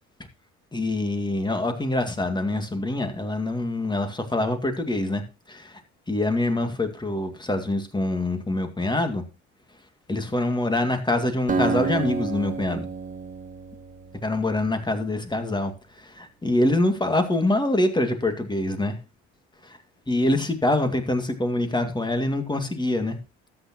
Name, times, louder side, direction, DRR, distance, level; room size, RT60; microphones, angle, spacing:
voice 1, 0.7-5.2 5.5-5.8 6.1-9.2 10.1-12.9 14.2-19.0 20.1-23.2, left 1 dB, 15° left, 2.2 m, -25 dB
Acoustic guitar, 11.5-15.1, right 5 dB, 25° right, 1.6 m, -30 dB
13.0 x 8.8 x 3.0 m
hypercardioid pair, 70°, 32 cm